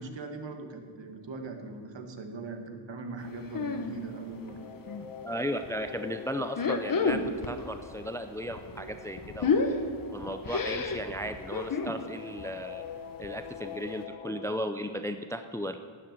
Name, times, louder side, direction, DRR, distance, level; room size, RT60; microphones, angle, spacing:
voice 1, 0.0-4.6, right 3 dB, 60° right, 5 dB, 1.8 m, -40 dB
sound 1, 3.5-4.0 4.3-5.1 5.5-5.7 6.4-7.6 7.9-12.0 12.4-12.6 12.9-13.0 13.2-13.3 13.8-13.9, left 4 dB, 40° left, 1.2 m, -30 dB
sound 2, 3.9-14.6, left 6 dB, 85° left, 1.2 m, -45 dB
voice 2, 5.2-7.2 7.5-9.7 10.1-12.8 13.2-15.8, equal, 5° left, 9 dB, 0.5 m, -35 dB
12.0 x 7.5 x 9.5 m, 2.1 s
wide cardioid pair, 125°, 50 cm